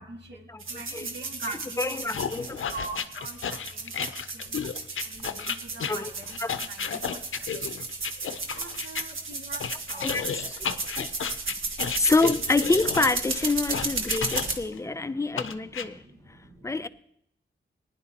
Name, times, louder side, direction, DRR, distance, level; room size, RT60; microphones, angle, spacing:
voice 1, 0.0-4.6 5.0-7.7 8.5-10.4 11.1-11.2 11.5-11.6 13.7-16.9, right 3 dB, 60° right, 2.1 m, -44 dB
sound 1, 0.6-14.5, right 3 dB, 85° right, 1.5 m, -34 dB
voice 2, 1.5-2.6 5.9-6.1 6.4-6.5 6.9-7.0 9.9-10.6 11.0-11.1 12.0-16.0 16.6-16.9, left 3 dB, 15° left, 0.4 m, -27 dB
sound 2, 2.1-9.0 9.6-14.8 15.4-15.9, left 7 dB, 90° left, 0.6 m, -33 dB
19.5 x 10.5 x 2.9 m
wide cardioid pair, 110°, 20 cm